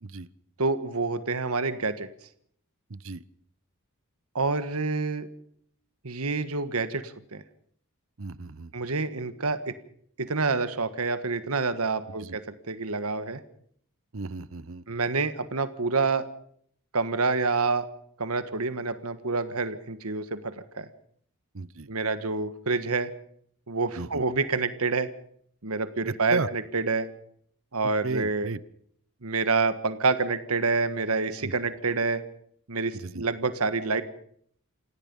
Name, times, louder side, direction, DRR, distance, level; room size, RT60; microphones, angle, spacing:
voice 1, 0.6-2.1 4.3-5.3 6.0-7.4 8.7-9.7 10.2-13.4 14.9-16.2 16.9-17.9 18.2-20.9 21.9-23.1 23.7-25.1 25.6-27.1 27.7-28.5 29.2-32.2 32.7-34.0, right 3 dB, 85° right, 12 dB, 1.5 m, -27 dB
voice 2, 2.9-3.2 8.2-8.7 12.2-12.4 14.1-14.8 21.5-21.9 23.9-24.2 26.1-26.5 27.8-28.6 31.4-31.5 32.9-33.2, right 3 dB, 65° right, 19 dB, 0.9 m, -34 dB
28.5 x 17.0 x 5.5 m, 0.64 s
head